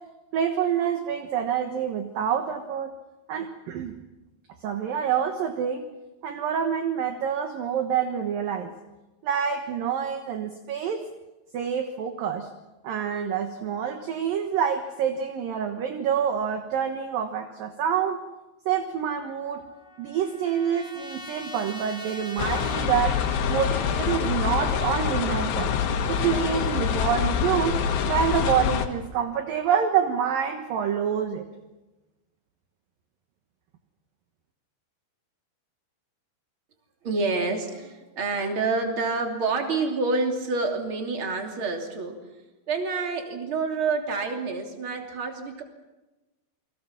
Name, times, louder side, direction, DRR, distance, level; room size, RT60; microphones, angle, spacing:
voice 1, 0.3-2.9 3.3-4.0 4.6-5.9 6.2-8.7 9.2-11.1 11.5-12.5 12.8-18.2 18.7-19.7 20.0-23.2 23.5-25.7 26.1-27.8 28.1-31.5, right 8 dB, 65° right, 6 dB, 2.5 m, -27 dB
Trumpet, 19.1-23.9, left 1 dB, ahead, 1.9 m, -42 dB
sound 1, 22.4-28.9, left 7 dB, 70° left, 3.7 m, -26 dB
voice 2, 37.0-42.3 42.7-45.6, right 3 dB, 30° right, 3 dB, 3.1 m, -28 dB
28.5 x 24.0 x 6.0 m, 1.1 s
omnidirectional pair, 5.4 m